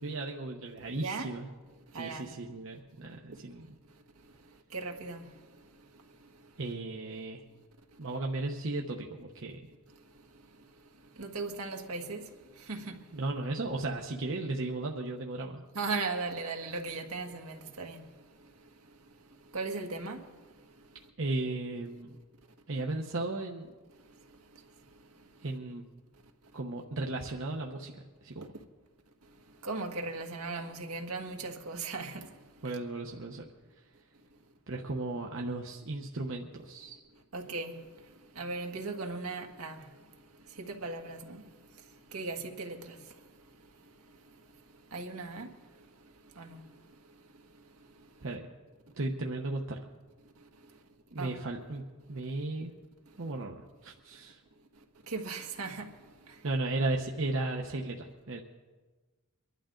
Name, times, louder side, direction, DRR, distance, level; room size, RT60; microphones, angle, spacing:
voice 1, 0.0-1.5 1.9-3.8 6.6-7.4 8.0-9.6 13.1-15.6 21.2-22.2 22.7-23.7 25.4-25.9 26.5-28.5 32.6-33.5 34.7-37.0 48.2-48.4 49.0-49.8 51.1-52.7 53.2-54.4 56.4-58.4, right 2 dB, 60° right, 0.9 m, -35 dB
voice 2, 1.0-1.3 1.9-2.3 4.7-5.2 11.2-12.2 12.7-13.0 15.7-18.0 19.5-20.2 29.6-32.3 37.3-37.7 38.3-39.8 40.6-41.4 42.1-42.9 44.9-45.5 46.4-46.6 51.2-51.3 55.1-55.9, right 3 dB, 80° right, 1.7 m, -37 dB
24.0 x 11.5 x 3.8 m
head